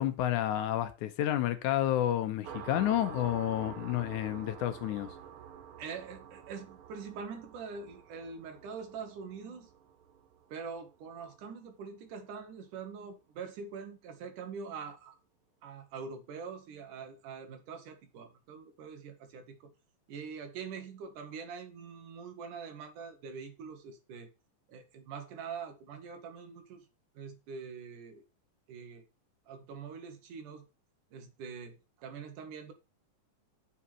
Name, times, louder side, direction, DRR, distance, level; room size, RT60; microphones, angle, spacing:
voice 1, 0.0-5.1, left 12 dB, 75° left, 2.3 m, -30 dB
sound 1, 2.4-11.7, right 8 dB, 65° right, 1.4 m, -48 dB
voice 2, 5.8-9.7 10.5-15.2 15.6-19.7 20.1-24.3 24.7-26.8 27.1-28.2 28.7-29.0 29.5-30.7 31.1-32.7, right 5 dB, 80° right, 3.1 m, -44 dB
7.2 x 5.6 x 6.1 m
omnidirectional pair, 3.6 m